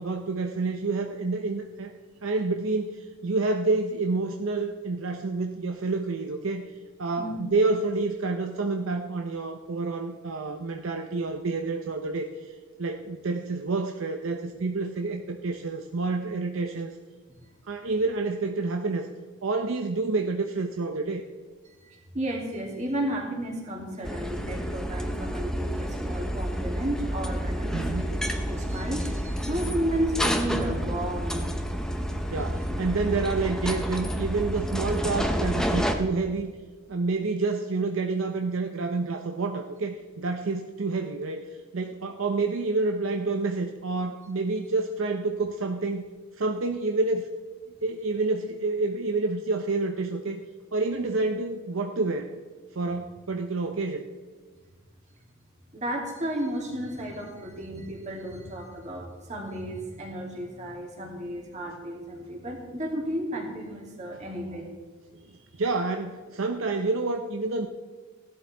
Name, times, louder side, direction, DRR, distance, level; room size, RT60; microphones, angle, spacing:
voice 1, 0.0-1.9 2.2-16.9 17.6-19.1 19.4-21.2 27.7-28.2 32.3-36.5 36.9-46.0 46.4-47.3 47.8-50.4 50.7-52.3 52.7-54.0 65.6-67.7, right 3 dB, 65° right, 5 dB, 0.7 m, -28 dB
voice 2, 7.2-7.5 17.3-17.4 21.6-31.5 55.7-64.7, right 1 dB, 35° right, -2 dB, 2.6 m, -33 dB
sound 1, 24.0-35.9, equal, 5° left, 0.8 m, -29 dB
16.5 x 11.5 x 3.4 m, 1.5 s
head